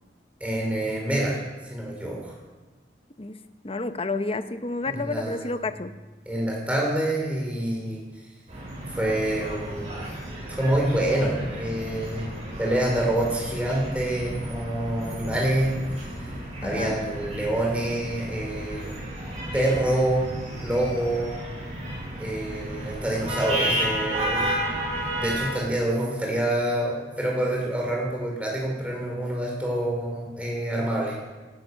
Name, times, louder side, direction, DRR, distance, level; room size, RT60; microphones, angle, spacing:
voice 1, 0.4-1.4 1.7-2.4 4.9-5.5 6.3-8.0 8.9-10.0 10.5-12.3 12.6-15.8 16.6-18.9 19.5-21.3 22.2-24.5 25.2-31.1, right 1 dB, 5° right, -2 dB, 4.9 m, -26 dB
voice 2, 3.2-6.0 16.6-17.0, left 3 dB, 30° left, 11 dB, 0.8 m, -30 dB
sound 1, 8.5-25.6, right 1 dB, 35° right, 7.6 m, -32 dB
18.0 x 12.0 x 6.4 m, 1.2 s
head